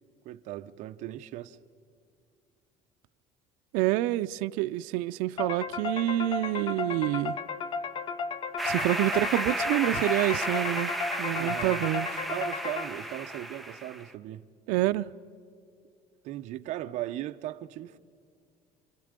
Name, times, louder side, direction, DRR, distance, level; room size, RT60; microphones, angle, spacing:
voice 1, 0.2-1.6 11.4-11.8 12.3-14.4 16.2-18.0, right 14 dB, 60° right, 0.9 m, -37 dB
voice 2, 3.7-7.4 8.6-12.1 14.7-15.1, right 17 dB, 90° right, 0.6 m, -27 dB
sound 1, 5.4-13.2, left 5 dB, 40° left, 1.3 m, -34 dB
sound 2, 8.6-14.1, right 1 dB, ahead, 1.2 m, -33 dB
29.0 x 27.5 x 5.2 m
cardioid pair, 145°, 13 cm